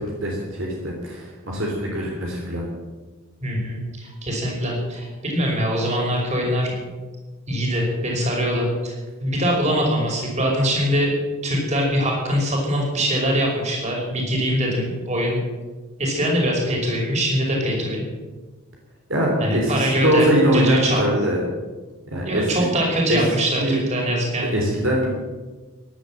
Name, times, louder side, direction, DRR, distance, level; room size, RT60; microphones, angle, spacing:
voice 1, 0.2-2.6 19.1-21.4 22.1-22.5 23.1-23.2 23.6-23.8 24.5-25.1, right 1 dB, 60° right, -2 dB, 3.4 m, -22 dB
voice 2, 3.4-6.7 7.5-8.9 9.2-11.1 11.4-15.4 16.0-18.0 19.4-20.3 20.5-21.1 22.2-24.5, equal, 30° right, -1 dB, 5.4 m, -23 dB
16.5 x 11.5 x 7.6 m, 1.3 s
head